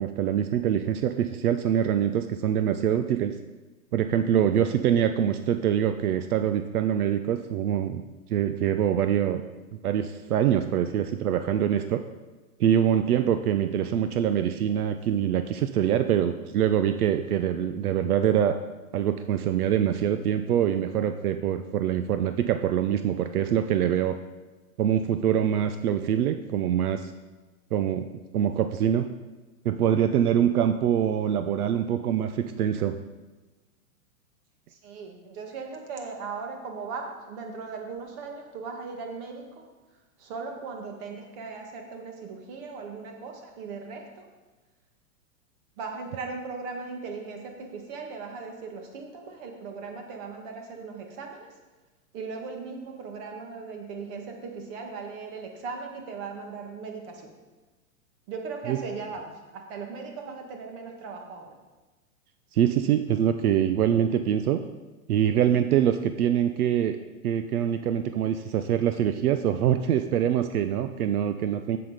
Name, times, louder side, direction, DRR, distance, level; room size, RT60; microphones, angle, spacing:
voice 1, 0.0-3.3 3.9-8.0 8.3-9.4 9.8-12.0 12.6-18.6 18.9-24.2 24.8-27.1 27.7-28.1 28.3-29.0 29.6-33.0 58.7-58.8 62.5-64.6 65.1-67.0 67.2-71.8, right 9 dB, 80° right, 9 dB, 0.7 m, -24 dB
voice 2, 34.7-39.7 40.2-44.3 45.8-51.5 52.1-57.3 58.3-61.5, right 4 dB, 40° right, 3 dB, 1.8 m, -38 dB
7.9 x 7.5 x 5.0 m, 1.2 s
hypercardioid pair, 145°, 44 cm